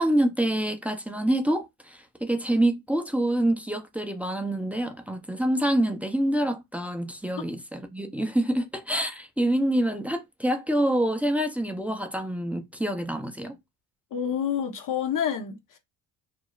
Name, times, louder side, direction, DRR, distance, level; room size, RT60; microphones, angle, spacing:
voice 1, 0.0-13.6, right 1 dB, 5° right, 0.5 m, -26 dB
voice 2, 14.1-15.8, left 8 dB, 45° left, 0.7 m, -28 dB
2.5 x 2.0 x 3.0 m
hypercardioid pair, 60°, 46 cm